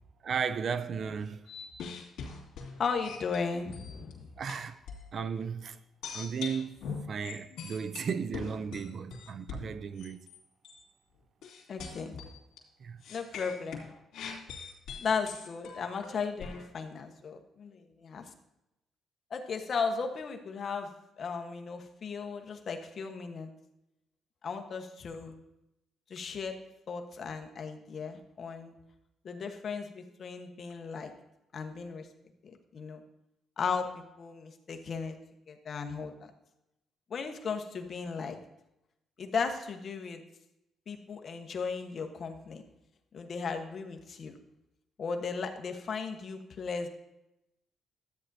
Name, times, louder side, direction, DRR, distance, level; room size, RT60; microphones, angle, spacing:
voice 1, 0.2-1.4 4.4-4.8 5.1-5.8 6.1-6.8 7.1-10.2 12.8-13.0, right 6 dB, 55° right, 0.5 m, -35 dB
sound 1, 1.4-4.1 4.5-5.1 6.0-10.4 10.6-10.9 11.4-12.6 13.0-16.7, left 5 dB, 85° left, 2.5 m, -42 dB
voice 2, 2.8-4.3 7.5-7.6 11.7-12.3 13.1-13.9 15.0-18.2 19.3-20.9 21.2-23.5 24.4-25.3 26.1-26.6 26.9-28.8 29.2-31.1 31.5-32.1 32.4-33.0 33.6-35.2 35.5-36.3 37.1-38.4 39.2-40.2 40.9-42.6 43.1-44.4 45.0-46.9, left 5 dB, 50° left, 1.2 m, -36 dB
13.0 x 8.9 x 2.7 m
cardioid pair, 90°, 0 cm